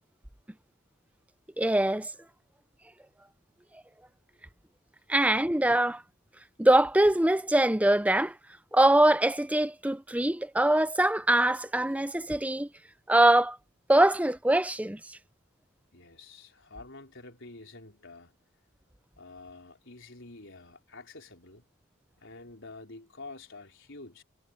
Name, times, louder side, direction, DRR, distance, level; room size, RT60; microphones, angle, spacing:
voice 1, 1.6-2.1 5.1-6.0 6.6-8.4 8.7-12.7 13.1-13.6 13.9-15.2, right 1 dB, 5° right, 0.6 m, -23 dB
voice 2, 15.9-18.4 19.2-21.6 22.2-24.2, left 3 dB, 55° left, 4.9 m, -48 dB
head